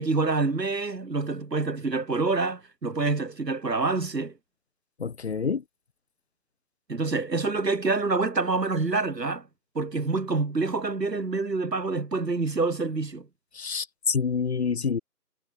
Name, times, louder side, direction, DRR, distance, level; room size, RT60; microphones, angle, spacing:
voice 1, 0.0-4.3 6.9-9.4 9.7-13.3, right 3 dB, 90° right, 6.7 m, -27 dB
voice 2, 5.0-5.6 13.5-15.0, left 5 dB, 40° left, 3.1 m, -27 dB
hypercardioid pair, 170°, 48 cm